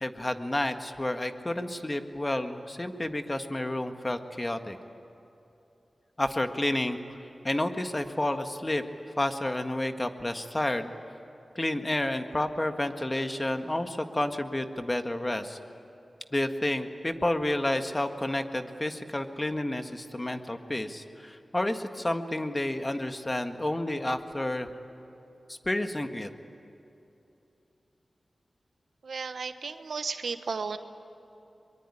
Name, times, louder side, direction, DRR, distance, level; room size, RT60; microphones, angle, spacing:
voice 1, 0.0-4.8 6.2-7.2 7.4-8.8 9.2-10.9 11.6-15.6 16.3-24.7 25.5-26.3, left 1 dB, 30° left, 7 dB, 1.8 m, -30 dB
voice 2, 29.0-30.8, right 5 dB, 80° right, 10 dB, 1.1 m, -34 dB
23.5 x 23.0 x 10.0 m, 2.9 s
cardioid pair, 45°, 0 cm